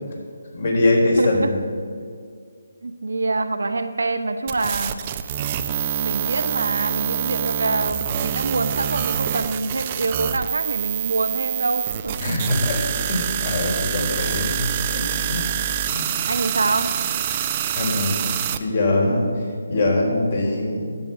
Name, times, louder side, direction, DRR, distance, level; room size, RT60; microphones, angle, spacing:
voice 1, 0.5-1.6 12.2-14.6 14.9-15.0 15.3-15.4 15.9-16.1 17.8-18.2 18.6-19.2 19.7-20.9, left 2 dB, 50° left, -1 dB, 3.7 m, -22 dB
voice 2, 1.2-1.5 2.8-5.0 6.0-12.4 16.3-16.9, right 3 dB, 80° right, 8 dB, 1.1 m, -25 dB
sound 1, 4.5-18.6, right 10 dB, 25° right, 0.5 m, -26 dB
11.0 x 7.8 x 8.6 m, 2.1 s
figure-of-eight pair, 160°, 0 cm